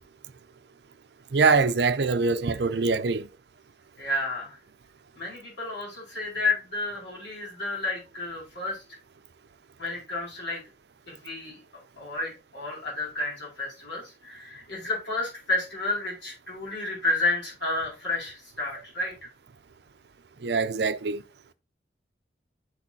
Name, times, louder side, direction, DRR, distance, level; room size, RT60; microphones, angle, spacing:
voice 1, 1.3-3.3 20.4-21.2, right 4 dB, 60° right, 0.5 m, -23 dB
voice 2, 4.0-4.6 5.1-8.8 9.8-10.6 11.1-11.6 12.0-19.3, left 2 dB, 80° left, 4.9 m, -31 dB
12.5 x 4.2 x 2.8 m
head